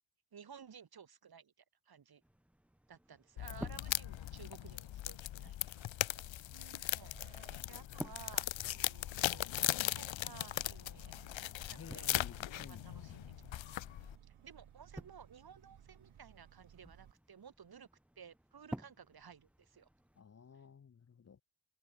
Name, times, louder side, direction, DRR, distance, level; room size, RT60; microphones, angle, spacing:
voice 1, 0.3-1.5 1.9-2.2 2.9-7.1 7.7-11.1 11.7-13.2 14.0-17.9 18.2-19.9, right 7 dB, 50° right, 7.2 m, -56 dB
sound 1, 2.2-20.2, right 1 dB, 5° right, 1.3 m, -54 dB
sound 2, 3.4-14.2, left 13 dB, 70° left, 0.8 m, -39 dB
sound 3, 6.2-17.1, right 10 dB, 85° right, 6.4 m, -61 dB
voice 2, 11.7-12.8 20.2-21.4, left 6 dB, 30° left, 1.1 m, -54 dB
wide cardioid pair, 175°, 48 cm